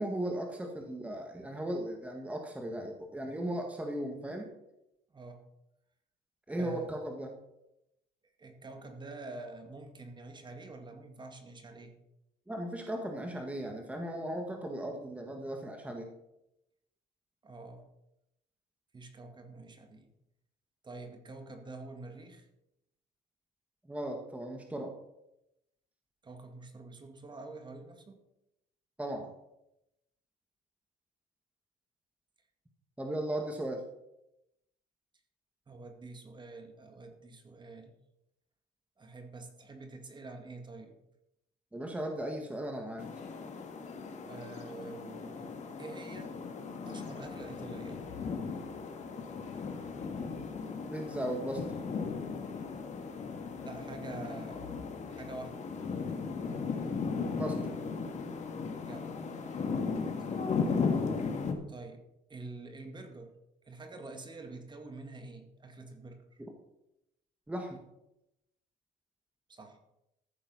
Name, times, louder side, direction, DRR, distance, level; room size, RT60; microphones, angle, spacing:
voice 1, 0.0-4.5 6.5-7.3 12.5-16.1 23.9-24.9 29.0-29.3 33.0-33.8 41.7-43.1 50.9-51.6 57.2-57.6 67.5-67.8, right 1 dB, 10° right, 3 dB, 1.7 m, -37 dB
voice 2, 5.1-5.4 6.5-6.9 8.4-12.0 17.4-17.9 18.9-20.1 20.8-22.5 26.2-28.2 35.7-38.0 39.0-41.0 44.2-46.4 46.8-48.1 53.6-55.7 58.8-59.2 60.2-60.5 61.7-63.4 63.6-66.4 69.5-69.8, right 3 dB, 25° right, 5 dB, 2.0 m, -47 dB
sound 1, 43.0-61.5, left 5 dB, 45° left, 2.1 m, -36 dB
sound 2, 47.2-59.4, left 6 dB, 85° left, 2.1 m, -55 dB
14.0 x 7.1 x 5.6 m, 0.85 s
cardioid pair, 110°, 17 cm